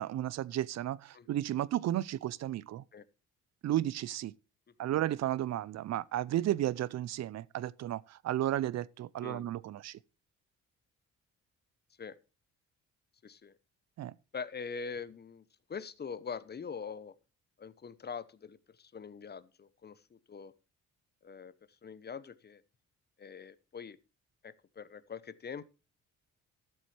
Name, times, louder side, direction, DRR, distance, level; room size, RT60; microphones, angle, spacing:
voice 1, 0.0-2.8 3.6-4.3 4.8-10.0 14.0-14.1, right 13 dB, 60° right, 0.5 m, -33 dB
voice 2, 13.2-13.6 14.3-17.1 17.6-20.5 21.2-21.5 21.8-22.6 23.2-24.0 24.4-25.6, left 6 dB, 35° left, 0.8 m, -43 dB
12.5 x 7.4 x 3.3 m
cardioid pair, 90°, 30 cm